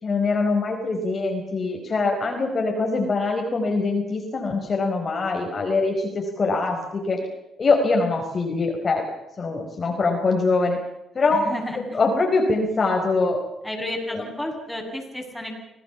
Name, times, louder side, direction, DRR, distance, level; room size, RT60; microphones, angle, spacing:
voice 1, 0.0-7.2 7.6-9.1 9.4-10.8 11.1-11.4 11.7-13.4 14.1-14.2, left 3 dB, 40° left, 2 dB, 4.6 m, -23 dB
voice 2, 11.3-12.0 13.6-15.5, left 1 dB, 5° left, 0 dB, 7.6 m, -31 dB
26.0 x 18.0 x 7.1 m, 0.94 s
cardioid pair, 90°, 0 cm